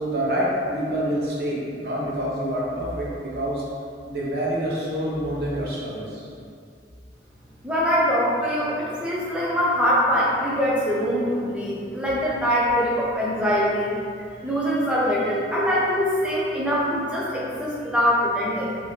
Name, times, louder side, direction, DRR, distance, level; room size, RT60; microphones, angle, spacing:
voice 1, 0.0-3.6 4.1-6.3, equal, 60° right, -5 dB, 0.9 m, -27 dB
voice 2, 7.6-13.9 14.3-18.8, equal, 5° right, -6 dB, 0.6 m, -23 dB
4.5 x 2.8 x 3.1 m, 2.3 s
head